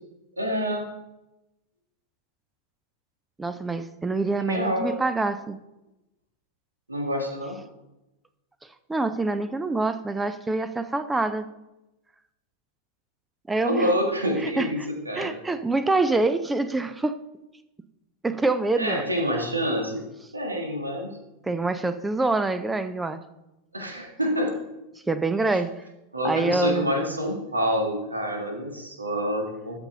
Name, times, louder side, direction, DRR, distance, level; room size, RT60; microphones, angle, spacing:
voice 1, 0.4-0.8 4.5-5.0 6.9-7.5 13.6-14.8 15.0-15.4 18.8-20.0 20.3-21.1 23.7-24.5 26.1-29.8, equal, 80° right, 2 dB, 1.7 m, -27 dB
voice 2, 3.4-5.6 8.9-11.5 13.5-13.9 14.4-14.9 15.1-17.1 18.2-19.0 21.4-23.2 25.1-25.7 26.2-26.9, right 3 dB, 10° right, 12 dB, 0.5 m, -25 dB
12.5 x 5.3 x 3.9 m, 0.95 s
figure-of-eight pair, 90°, 0 cm